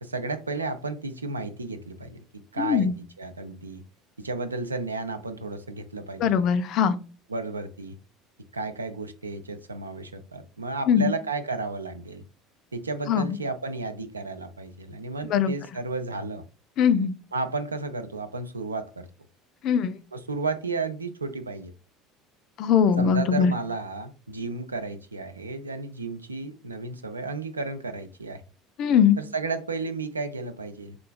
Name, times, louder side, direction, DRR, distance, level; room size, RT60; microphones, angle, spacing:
voice 1, 0.0-2.2 2.5-2.9 3.2-3.8 4.2-6.4 7.3-8.0 8.5-12.2 12.7-16.4 17.3-19.1 20.1-21.7 23.0-28.4 29.2-31.0, right 3 dB, 85° right, 9 dB, 0.3 m, -33 dB
voice 2, 2.6-2.9 6.2-7.0 10.9-11.1 13.1-13.4 15.3-15.5 16.8-17.1 19.6-19.9 22.6-23.5 28.8-29.2, left 7 dB, 50° left, 11 dB, 0.3 m, -21 dB
3.8 x 2.3 x 2.2 m, 0.34 s
figure-of-eight pair, 65°, 0 cm